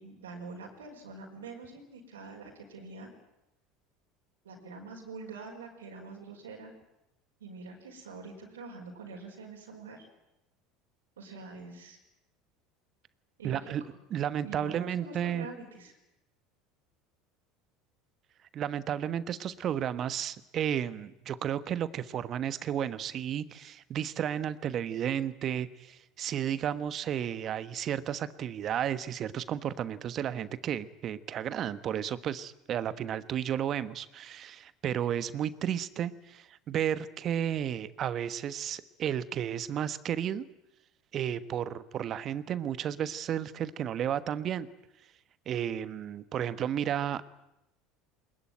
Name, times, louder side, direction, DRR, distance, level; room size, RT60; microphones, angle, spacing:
voice 1, 0.0-3.1 4.4-6.7 7.4-10.0 11.2-12.0 13.4-13.7 14.4-15.9, right 3 dB, 85° right, 0 dB, 5.0 m, -45 dB
voice 2, 13.4-13.8 14.1-15.5 18.5-40.4 41.1-44.7 45.5-47.2, right 9 dB, 45° right, 14 dB, 1.3 m, -33 dB
21.5 x 21.0 x 9.3 m, 0.89 s
hypercardioid pair, 75°, 0 cm